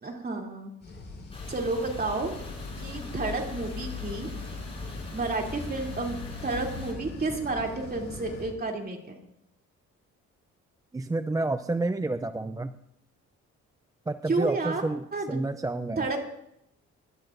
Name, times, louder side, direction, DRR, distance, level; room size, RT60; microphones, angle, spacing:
voice 1, 0.0-0.7 1.5-2.3 2.8-4.3 5.1-6.2 6.4-9.2 14.3-14.8 15.1-15.4 16.0-16.2, right 3 dB, 30° right, 1 dB, 3.0 m, -31 dB
sound 1, 0.8-8.5, left 2 dB, 35° left, 5.2 m, -43 dB
sound 2, 1.3-6.9, left 5 dB, 20° left, 5.8 m, -40 dB
sound 3, 1.9-8.4, left 4 dB, 55° left, 4.8 m, -48 dB
voice 2, 10.9-12.7 14.1-15.0 15.3-16.0, right 2 dB, 10° right, 11 dB, 0.4 m, -29 dB
24.5 x 12.0 x 2.6 m, 0.76 s
cardioid pair, 90°, 30 cm